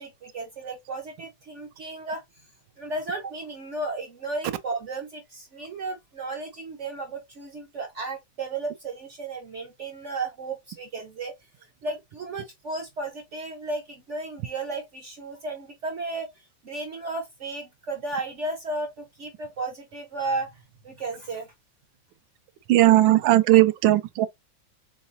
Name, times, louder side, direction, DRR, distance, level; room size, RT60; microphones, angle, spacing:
voice 1, 0.0-2.2 2.8-11.4 11.8-16.3 16.6-20.6 20.8-21.5, right 3 dB, 60° right, 0.8 m, -34 dB
voice 2, 22.7-24.3, right 15 dB, 85° right, 1.3 m, -17 dB
3.9 x 3.6 x 2.6 m
omnidirectional pair, 2.0 m